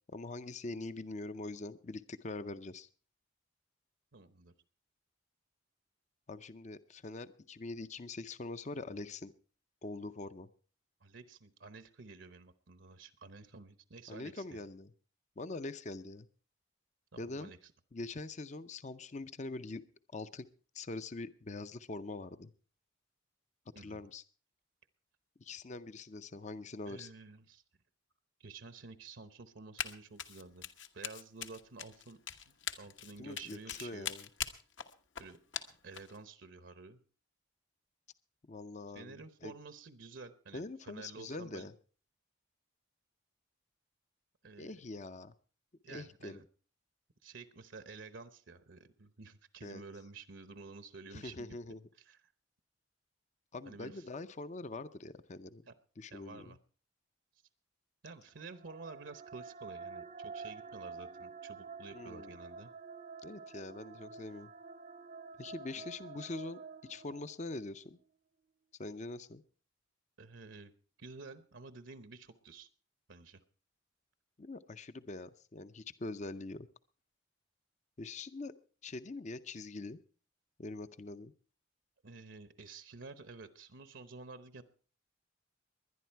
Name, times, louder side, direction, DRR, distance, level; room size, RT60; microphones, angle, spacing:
voice 1, 0.1-2.9 6.3-9.3 9.8-10.5 14.1-14.9 15.4-16.3 17.2-17.5 17.9-19.8 20.1-20.5 20.7-22.5 23.8-24.2 25.4-27.1 33.2-34.3 38.5-39.5 40.5-41.7 44.6-45.3 45.9-46.4 49.6-49.8 51.1-51.8 53.5-55.6 56.0-56.6 61.9-62.3 63.2-64.5 65.4-68.0 68.8-69.4 74.4-76.7 78.0-78.5 78.8-80.0 80.6-81.3, left 2 dB, 35° left, 13 dB, 0.6 m, -43 dB
voice 2, 4.1-4.5 11.0-14.6 17.1-17.7 23.7-24.0 26.9-27.6 28.4-30.7 30.9-32.2 32.5-34.1 35.2-35.4 35.8-37.0 38.9-41.7 44.4-44.7 45.8-46.4 47.2-51.6 52.0-52.3 53.7-54.1 55.7-55.8 56.1-56.6 58.0-62.7 65.7-65.8 70.2-70.7 71.0-72.7 73.1-73.4 82.0-84.6, right 4 dB, 65° right, 11 dB, 0.9 m, -51 dB
Run, 29.8-29.9 30.2-36.2, left 9 dB, 65° left, 1.2 m, -41 dB
sound 1, 58.4-67.6, right 4 dB, 40° right, 0.6 m, -49 dB
20.5 x 11.0 x 4.5 m, 0.42 s
head